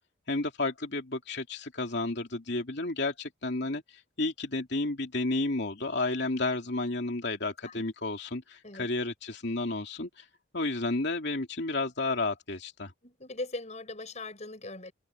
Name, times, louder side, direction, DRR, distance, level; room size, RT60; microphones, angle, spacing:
voice 1, 0.3-10.2 10.5-12.9, left 2 dB, 60° left, 2.9 m, -32 dB
voice 2, 13.0-14.9, left 2 dB, 35° left, 7.0 m, -40 dB
head